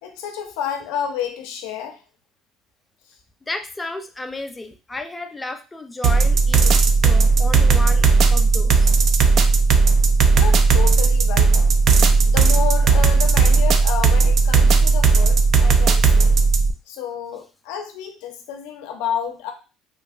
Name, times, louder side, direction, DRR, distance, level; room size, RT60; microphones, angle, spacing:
voice 1, 0.0-2.0 10.3-11.7 12.2-16.3 16.9-19.5, left 9 dB, 85° left, 5 dB, 0.5 m, -30 dB
voice 2, 3.4-8.9, left 2 dB, 15° left, 6 dB, 0.5 m, -33 dB
sound 1, 6.0-16.7, right 4 dB, 55° right, 0.3 m, -15 dB
3.1 x 2.6 x 2.4 m, 0.32 s
supercardioid pair, 100°, 0 cm